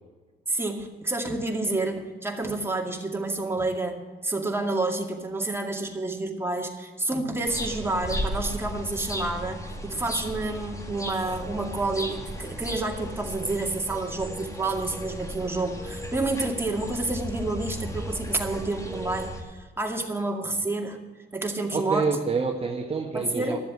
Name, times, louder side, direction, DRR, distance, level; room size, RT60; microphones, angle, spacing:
voice 1, 0.5-21.0 21.3-22.2 23.1-23.6, right 2 dB, 10° right, 2 dB, 2.2 m, -29 dB
sound 1, 7.5-19.4, equal, 15° left, 2.1 m, -35 dB
voice 2, 21.7-23.6, right 5 dB, 30° right, 3 dB, 1.4 m, -27 dB
12.5 x 7.6 x 8.5 m, 1.4 s
cardioid pair, 90°, 20 cm